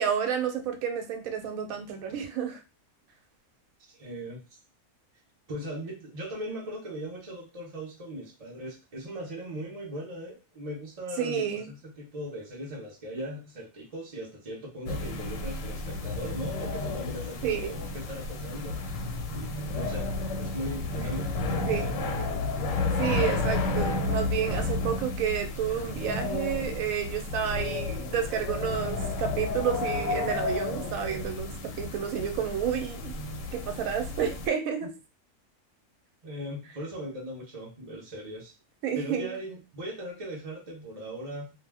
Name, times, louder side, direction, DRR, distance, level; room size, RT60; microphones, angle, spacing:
voice 1, 0.0-2.6 11.2-11.7 17.4-17.8 21.7-21.9 23.0-33.1 33.5-34.9 38.8-39.3, right 8 dB, 75° right, 5 dB, 1.0 m, -30 dB
voice 2, 3.9-4.4 5.5-19.1 19.3-20.1 20.4-21.9 36.2-38.5 38.9-41.5, equal, 45° right, -3 dB, 0.5 m, -39 dB
sound 1, 14.9-34.5, left 3 dB, 70° left, 0.9 m, -32 dB
2.4 x 2.1 x 3.3 m, 0.29 s
omnidirectional pair, 1.5 m